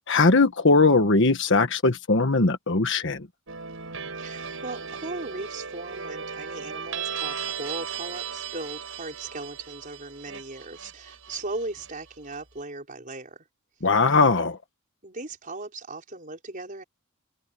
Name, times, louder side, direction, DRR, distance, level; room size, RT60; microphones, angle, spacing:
voice 1, 0.1-3.2 13.8-14.6, left 3 dB, 60° left, 1.4 m, -20 dB
sound 1, 3.5-12.3, right 6 dB, 70° right, 6.3 m, -36 dB
voice 2, 4.2-13.4 15.0-16.8, right 2 dB, 40° right, 4.9 m, -38 dB
open air
head